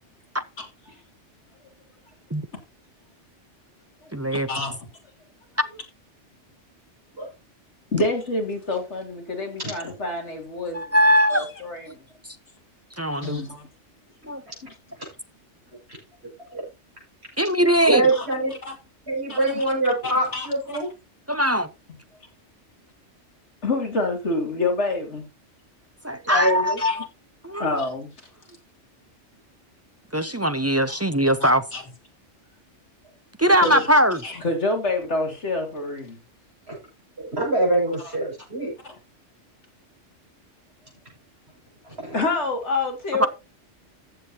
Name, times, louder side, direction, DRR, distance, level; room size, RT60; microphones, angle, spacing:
voice 1, 4.1-4.5 10.7-11.4 13.0-13.4 14.3-14.4 17.4-18.0 21.3-21.7 26.0-27.1 27.4-27.7 30.1-31.6 33.4-34.2 43.2-43.3, equal, 20° right, 0.4 m, -20 dB
voice 2, 7.9-11.0 11.3-12.0 13.1-13.7 14.6-14.7 18.1-18.3 18.6-18.7 19.3-19.6 20.0-20.5 23.6-25.2 26.3-26.4 26.8-27.0 27.6-28.1 30.9-31.0 31.4-31.8 33.6-33.9 34.2-36.2 38.0-38.1 42.1-43.3, left 2 dB, 70° left, 3.2 m, -27 dB
voice 3, 17.9-18.5 19.1-20.9 26.2-26.8 36.7-36.8 37.2-38.7 41.8-42.2, right 2 dB, 60° right, 7.3 m, -24 dB
14.5 x 8.1 x 2.9 m
omnidirectional pair, 1.2 m